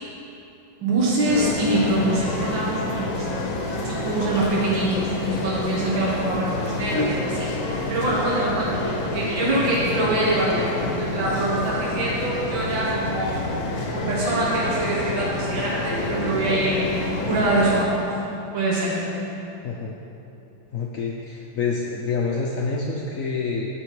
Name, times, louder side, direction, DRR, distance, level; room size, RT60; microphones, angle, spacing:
voice 1, 0.8-3.3 3.8-13.4 13.9-16.9 17.2-18.0 18.5-19.0, right 1 dB, 80° right, -6 dB, 2.1 m, -24 dB
sound 1, 1.3-17.8, left 2 dB, 55° left, 1.0 m, -28 dB
voice 2, 20.7-23.7, left 4 dB, 75° left, -1 dB, 0.7 m, -27 dB
12.5 x 4.3 x 4.7 m, 2.9 s
omnidirectional pair, 2.1 m